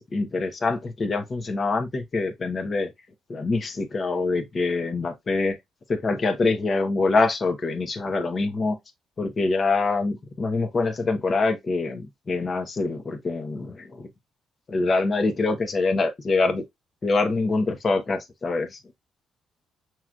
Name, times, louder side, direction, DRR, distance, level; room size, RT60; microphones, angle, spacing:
voice 1, 0.1-2.9 3.3-5.6 5.9-8.8 9.2-14.1 14.7-16.6 17.0-18.8, left 3 dB, 40° left, 1.0 m, -25 dB
5.9 x 3.0 x 2.5 m
cardioid pair, 90°, 0 cm